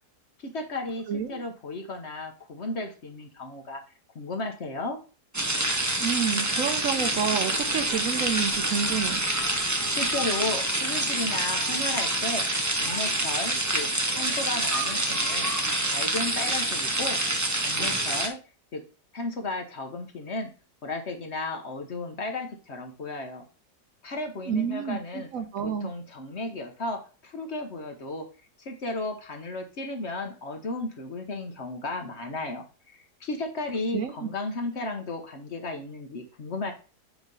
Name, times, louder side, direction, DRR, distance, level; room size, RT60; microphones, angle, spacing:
voice 1, 0.4-3.8 4.1-5.0 9.9-12.4 12.8-15.5 15.8-17.2 17.6-18.4 18.7-18.8 19.1-20.5 20.8-23.4 24.0-25.3 25.6-28.3 28.6-36.7, left 2 dB, 50° left, 4 dB, 1.1 m, -34 dB
voice 2, 1.1-1.4 6.0-9.2 24.5-25.9 33.9-34.3, right 7 dB, 65° right, 7 dB, 0.9 m, -29 dB
sound 1, 5.3-18.3, right 2 dB, 20° right, 0.4 m, -27 dB
8.1 x 3.1 x 5.3 m, 0.37 s
omnidirectional pair, 1.7 m